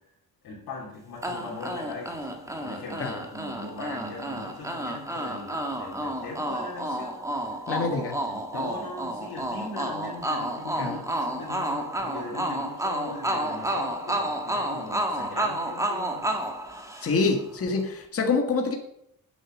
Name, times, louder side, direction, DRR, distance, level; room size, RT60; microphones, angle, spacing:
voice 1, 0.4-7.5 8.3-16.8, left 3 dB, 85° left, -6 dB, 3.2 m, -40 dB
sound 1, 1.2-17.4, right 1 dB, 10° right, 1.5 m, -31 dB
voice 2, 7.7-8.2 10.8-11.0 17.0-18.8, left 4 dB, 40° left, 3 dB, 1.6 m, -26 dB
9.3 x 8.0 x 6.1 m, 0.77 s
cardioid pair, 140°, 36 cm